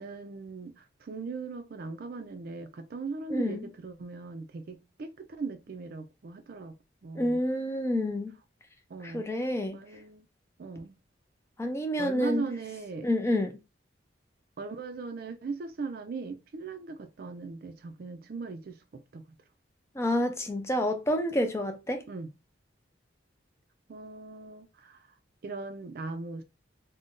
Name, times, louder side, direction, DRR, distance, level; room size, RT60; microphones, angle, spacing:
voice 1, 0.0-6.8 7.0-7.4 8.9-9.3 9.7-10.3 10.6-11.0 12.0-13.1 14.6-19.2 22.1-22.3 23.9-25.1 25.4-26.4, right 4 dB, 50° right, 0.4 m, -39 dB
voice 2, 3.3-3.7 7.1-8.3 9.0-9.8 11.6-12.5 13.0-13.5 20.0-22.0, left 1 dB, 15° left, 0.4 m, -28 dB
2.5 x 2.1 x 3.6 m
head